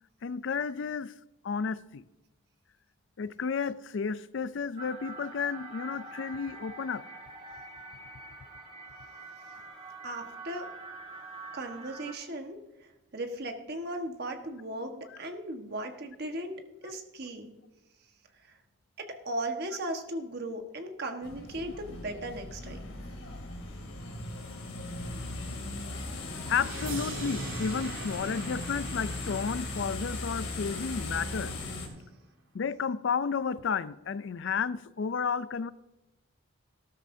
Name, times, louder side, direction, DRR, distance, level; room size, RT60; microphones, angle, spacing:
voice 1, 0.2-1.1 1.4-2.0 3.2-7.0 16.9-17.0 26.5-31.6 32.5-35.7, left 6 dB, 60° left, 0.4 m, -32 dB
sound 1, 4.8-12.1, right 3 dB, 30° right, 1.9 m, -45 dB
voice 2, 10.0-10.7 11.5-12.6 13.1-17.5 19.0-22.8, right 1 dB, 50° right, 1.4 m, -37 dB
sound 2, 21.2-31.9, left 2 dB, 80° left, 2.7 m, -38 dB
sound 3, 26.4-31.4, right 3 dB, 70° right, 3.0 m, -42 dB
13.5 x 13.0 x 2.7 m
head